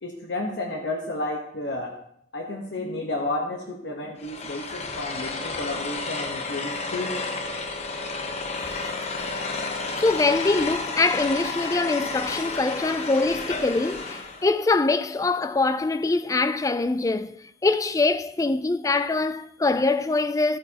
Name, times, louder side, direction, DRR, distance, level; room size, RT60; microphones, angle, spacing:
voice 1, 0.0-2.0 2.3-7.2, left 2 dB, 90° left, 1.1 m, -31 dB
sound 1, 4.2-14.5, left 3 dB, 40° left, 1.0 m, -31 dB
voice 2, 10.0-20.6, left 3 dB, 20° left, 0.3 m, -23 dB
13.0 x 8.8 x 2.9 m
head